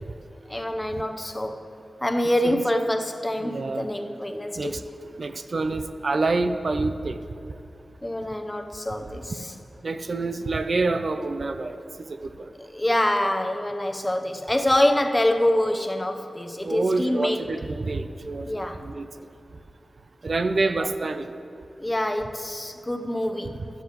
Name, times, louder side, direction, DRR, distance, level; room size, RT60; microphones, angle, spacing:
voice 1, 0.5-1.7 2.0-4.9 8.0-9.5 12.6-17.5 18.4-18.8 20.8-20.9 21.8-23.7, left 1 dB, 20° left, 6 dB, 0.8 m, -25 dB
voice 2, 3.4-3.9 4.6-4.8 5.2-7.2 9.8-12.5 16.6-18.5 18.8-19.1 20.2-21.3, right 3 dB, 60° right, 9 dB, 0.4 m, -27 dB
12.5 x 12.0 x 3.1 m, 2.6 s
cardioid pair, 50°, 0 cm